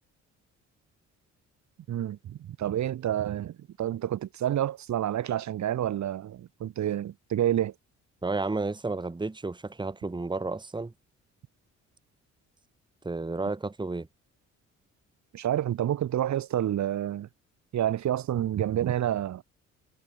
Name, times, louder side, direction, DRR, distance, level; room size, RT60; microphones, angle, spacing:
voice 1, 1.9-7.7 15.3-17.3 17.7-19.4, right 11 dB, 70° right, 2.2 m, -29 dB
voice 2, 8.2-10.9 13.0-14.1, right 3 dB, 15° right, 1.8 m, -32 dB
cardioid pair, 90°, 30 cm